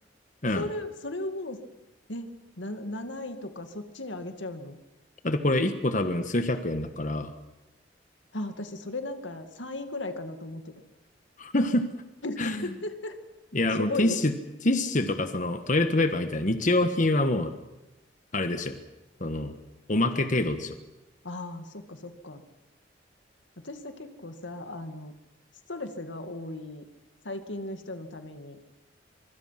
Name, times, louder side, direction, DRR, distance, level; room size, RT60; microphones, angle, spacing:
voice 1, 0.5-1.6 2.1-4.8 8.3-10.7 12.2-13.2 13.7-14.2 21.2-22.4 23.6-25.1 25.7-26.9 27.2-28.6, left 2 dB, 90° left, 8 dB, 2.3 m, -36 dB
voice 2, 5.2-7.3 11.4-11.9 12.4-12.6 13.5-14.3 14.6-17.5 18.3-18.8 19.2-19.6 19.9-20.7, left 2 dB, 45° left, 8 dB, 1.5 m, -26 dB
24.5 x 24.0 x 5.9 m, 1.0 s
head